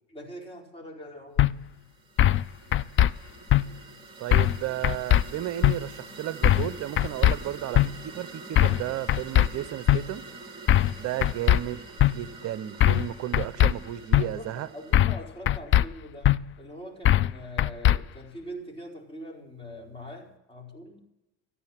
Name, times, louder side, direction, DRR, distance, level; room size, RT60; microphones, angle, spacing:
voice 1, 0.1-1.6 14.2-21.0, equal, 15° left, 4.7 m, -43 dB
sound 1, 1.4-1.5 2.2-2.4 2.7-3.1 3.5-3.6 4.3-4.6 4.8-5.2 5.6-5.7 6.4-6.7 7.0-7.3 7.7-7.9 8.6-8.8 9.1-9.5 9.9-10.0 10.7-10.9 11.2-11.6 12.0-12.1 12.8-13.1 13.3-13.7 14.1-14.2 14.9-15.2 15.5-15.8 16.2-16.4 17.0-17.3 17.6-18.0, left 12 dB, 35° left, 0.4 m, -19 dB
sound 2, 1.7-15.0, right 4 dB, 15° right, 2.7 m, -45 dB
voice 2, 4.2-10.2 11.0-14.7, right 13 dB, 45° right, 0.8 m, -33 dB
14.5 x 9.9 x 7.3 m
supercardioid pair, 115°, 35 cm